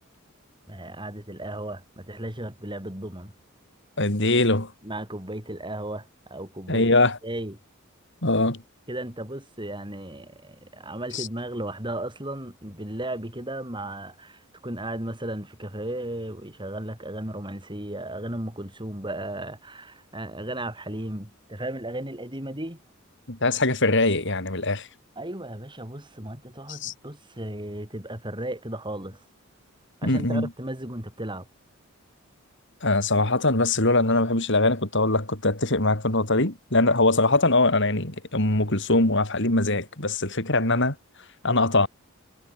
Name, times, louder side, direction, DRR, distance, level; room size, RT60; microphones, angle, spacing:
voice 1, 0.7-3.3 4.8-6.9 7.2-7.6 8.9-22.8 25.2-29.2 30.0-31.5, right 1 dB, 25° right, 7.0 m, -35 dB
voice 2, 4.0-4.7 6.7-7.2 8.2-8.6 11.1-11.3 23.3-24.9 26.7-26.9 30.0-30.5 32.8-41.0 41.4-41.9, left 2 dB, 60° left, 5.1 m, -22 dB
head